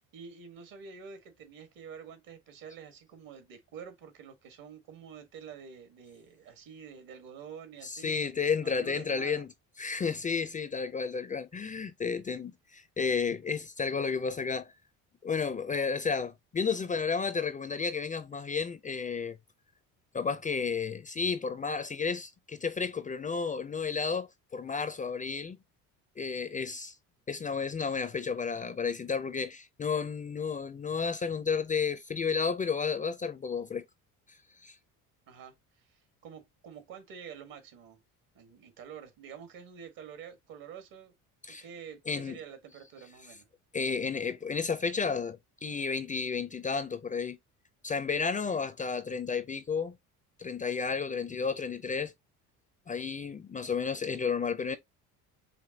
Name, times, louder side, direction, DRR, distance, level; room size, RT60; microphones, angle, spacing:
voice 1, 0.1-9.4 35.3-38.0 38.3-41.1 41.5-43.5 46.2-46.4 51.0-51.2, right 7 dB, 65° right, 1.6 m, -48 dB
voice 2, 7.8-9.5 9.8-14.7 15.2-19.4 20.1-25.6 26.2-26.9 27.3-33.8 34.6-34.8 41.5-41.6 42.1-42.4 43.7-47.4 47.8-50.0 50.4-52.1 52.9-54.8, left 5 dB, 20° left, 0.4 m, -32 dB
5.1 x 2.8 x 2.7 m
cardioid pair, 100°, 36 cm